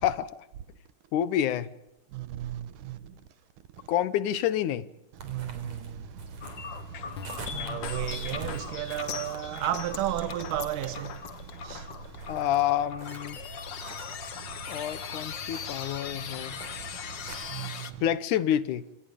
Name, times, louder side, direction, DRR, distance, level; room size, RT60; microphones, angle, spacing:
voice 1, 1.1-1.7 3.9-4.9 7.5-7.8 12.3-13.4 14.7-16.5 18.0-18.8, left 11 dB, 75° left, 2.4 m, -28 dB
voice 2, 2.2-2.6 2.9-3.0 5.3-5.7 7.5-11.1 17.5-17.7, right 13 dB, 80° right, 2.6 m, -32 dB
sound 1, 5.2-17.7, right 4 dB, 55° right, 4.7 m, -43 dB
sound 2, 6.4-17.9, left 7 dB, 55° left, 1.3 m, -39 dB
28.0 x 26.0 x 5.2 m
omnidirectional pair, 3.7 m